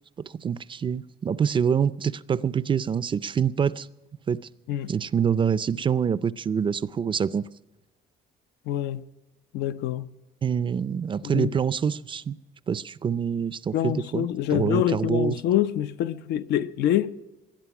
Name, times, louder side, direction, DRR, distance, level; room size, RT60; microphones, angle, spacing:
voice 1, 0.4-3.9 4.3-4.4 4.9-7.4 10.4-12.4 12.7-14.3 14.5-15.4, right 7 dB, 30° right, 0.4 m, -25 dB
voice 2, 8.7-9.0 9.5-10.1 11.2-11.5 13.7-17.1, left 11 dB, 80° left, 0.7 m, -26 dB
19.0 x 11.5 x 6.0 m
cardioid pair, 110°, 17 cm